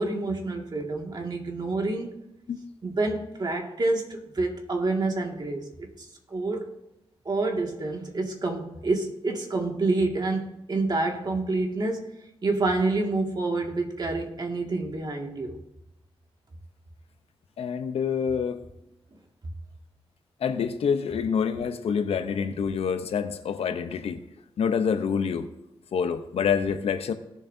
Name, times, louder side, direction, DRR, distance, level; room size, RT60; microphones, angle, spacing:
voice 1, 0.0-2.1 2.8-6.7 7.3-12.1 12.4-15.6 19.1-19.2, right 2 dB, 45° right, 1 dB, 2.1 m, -28 dB
voice 2, 17.6-18.6 20.4-24.2 24.6-25.5 25.9-27.1, left 6 dB, 80° left, 9 dB, 0.8 m, -27 dB
18.0 x 7.3 x 2.7 m, 0.87 s
cardioid pair, 75°, 10 cm